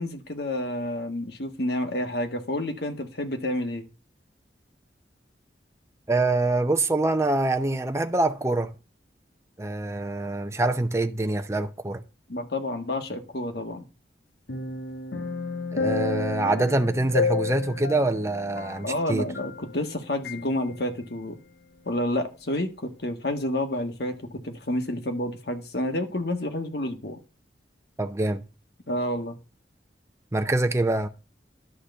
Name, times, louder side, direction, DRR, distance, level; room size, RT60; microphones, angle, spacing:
voice 1, 0.0-3.8 12.3-13.9 18.8-21.4 21.8-27.2 28.9-29.4, left 1 dB, 60° left, 1.7 m, -29 dB
voice 2, 6.1-8.7 9.6-12.0 15.7-19.3 28.0-28.4 30.3-31.1, right 2 dB, 15° right, 0.7 m, -25 dB
sound 1, 14.5-19.9 20.2-20.4, left 4 dB, 85° left, 1.1 m, -31 dB
11.5 x 4.0 x 7.0 m
head